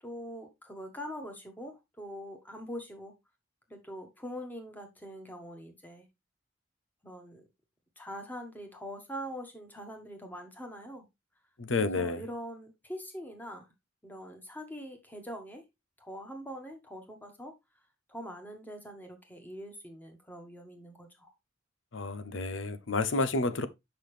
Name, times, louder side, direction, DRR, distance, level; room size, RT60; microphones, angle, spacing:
voice 1, 0.0-3.1 3.7-6.1 7.0-7.5 7.9-11.0 11.8-13.7 14.0-15.6 16.0-17.5 18.1-21.3, equal, 10° left, 1.6 m, -43 dB
voice 2, 11.6-12.2 21.9-23.7, left 3 dB, 75° left, 0.8 m, -30 dB
6.8 x 5.7 x 3.3 m
head